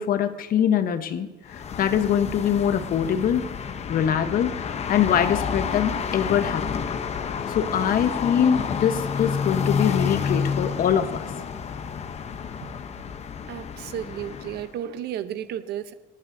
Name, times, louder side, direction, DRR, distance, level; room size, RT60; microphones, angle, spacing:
voice 1, 0.0-3.5 3.9-4.5 4.9-6.9 7.5-11.3, left 8 dB, 60° left, 9 dB, 1.1 m, -23 dB
sound 1, 1.5-14.7, left 6 dB, 40° left, 0.8 m, -29 dB
voice 2, 13.5-15.9, right 10 dB, 75° right, 11 dB, 0.8 m, -33 dB
27.0 x 9.4 x 2.7 m, 1.2 s
cardioid pair, 110°, 17 cm